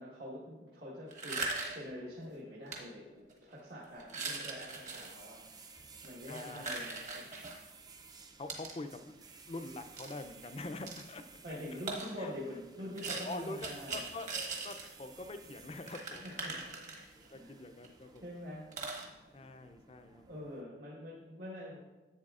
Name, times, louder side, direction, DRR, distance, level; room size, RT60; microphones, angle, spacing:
voice 1, 0.0-5.4 6.0-7.3 11.4-14.1 16.2-16.6 17.3-17.5 18.2-18.7 20.3-21.8, left 1 dB, 65° right, -6 dB, 1.4 m, -45 dB
sound 1, 1.1-1.9 2.7-2.8 3.3-3.5 4.0-5.1 5.9-7.6 8.5-8.8 10.0-10.1 10.9-11.0 11.9-12.1 13.0-14.9 15.2-15.3 15.5-15.6 15.9-17.3 17.8-17.9 18.2-18.3 18.7-19.1, right 3 dB, 40° right, 1.3 m, -40 dB
sound 2, 4.6-20.6, right 4 dB, 20° right, 0.5 m, -56 dB
voice 2, 6.3-6.7 8.4-9.1 9.5-11.2 11.5-11.8 12.2-12.3 13.3-14.3 14.6-16.2 16.5-16.6 17.2-18.2 19.3-20.3, left 2 dB, 30° left, 9 dB, 0.4 m, -44 dB
10.5 x 8.0 x 2.4 m, 1.2 s
head